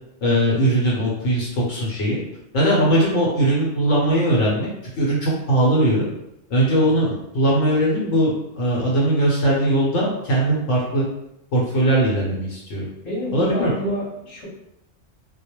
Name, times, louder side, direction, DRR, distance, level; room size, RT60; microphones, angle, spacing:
voice 1, 0.2-2.2 2.5-4.7 5.0-6.0 6.5-11.0 11.5-12.8 13.3-13.7, right 1 dB, 70° left, -4 dB, 0.9 m, -20 dB
voice 2, 13.0-14.5, equal, 25° left, -7 dB, 0.9 m, -28 dB
2.2 x 2.1 x 2.9 m, 0.82 s
omnidirectional pair, 1.3 m